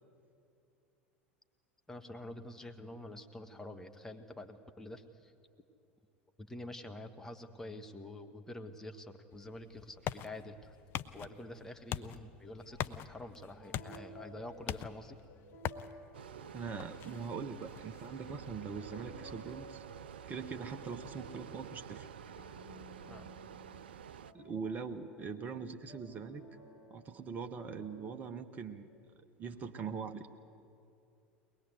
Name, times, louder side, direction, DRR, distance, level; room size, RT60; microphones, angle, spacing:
voice 1, 1.9-5.3 6.4-10.8 11.1-15.2 23.1-23.3, left 1 dB, 10° left, 5 dB, 1.4 m, -47 dB
sound 1, 9.3-20.8, left 11 dB, 40° left, 0.6 m, -45 dB
sound 2, 12.7-13.0 13.4-18.0 18.4-28.1, right 1 dB, 70° left, 4.7 m, -55 dB
sound 3, 16.1-24.3, right 9 dB, 65° right, 0.5 m, -49 dB
voice 2, 16.5-19.8 20.3-22.1 24.3-26.4 26.9-28.9 29.4-30.3, right 5 dB, 30° right, 7 dB, 1.0 m, -42 dB
22.0 x 20.0 x 8.1 m, 2.7 s
figure-of-eight pair, 75°, 6 cm